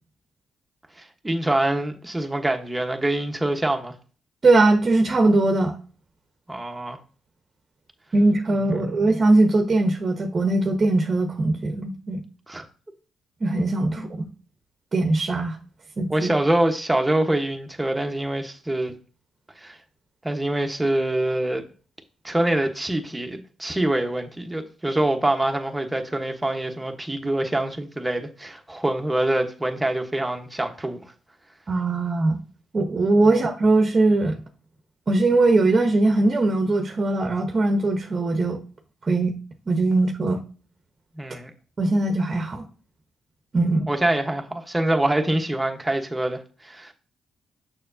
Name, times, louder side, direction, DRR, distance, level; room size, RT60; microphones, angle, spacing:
voice 1, 1.0-3.9 6.5-7.0 8.9-9.0 12.5-12.6 16.1-18.9 19.6-19.8 20.2-21.6 22.2-31.0 33.2-33.4 41.2-41.5 43.6-46.9, right 1 dB, 10° right, 1.2 m, -25 dB
voice 2, 4.4-5.7 8.1-12.2 13.4-14.1 14.9-15.6 16.0-16.3 31.7-32.4 32.7-34.4 35.1-38.6 39.0-39.4 39.7-40.4 41.8-42.6 43.5-43.8, right 2 dB, 35° right, 1.0 m, -20 dB
6.7 x 5.9 x 2.7 m
cardioid pair, 75°, 0 cm